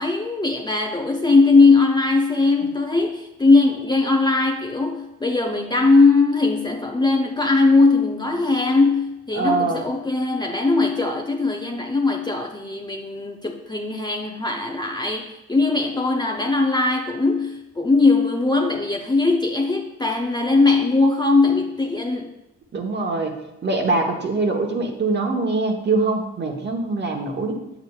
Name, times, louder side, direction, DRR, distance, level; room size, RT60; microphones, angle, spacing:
voice 1, 0.0-22.3, left 3 dB, 15° left, 2 dB, 0.5 m, -19 dB
voice 2, 9.3-9.8 22.7-27.6, right 3 dB, 35° right, 3 dB, 1.1 m, -23 dB
8.0 x 7.0 x 2.4 m, 0.92 s
cardioid pair, 90°, 30 cm